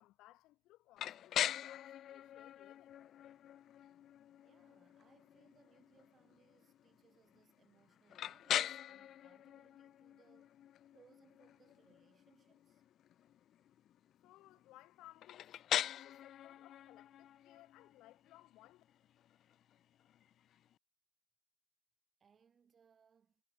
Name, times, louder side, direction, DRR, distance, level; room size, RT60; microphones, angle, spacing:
voice 1, 0.0-3.0 14.2-18.8, left 17 dB, 60° left, 3.4 m, -62 dB
sound 1, 1.0-20.7, left 11 dB, 45° left, 0.3 m, -43 dB
voice 2, 4.4-10.5 10.9-12.8 22.2-23.4, right 6 dB, 30° right, 3.4 m, -70 dB
cardioid pair, 145°, 0 cm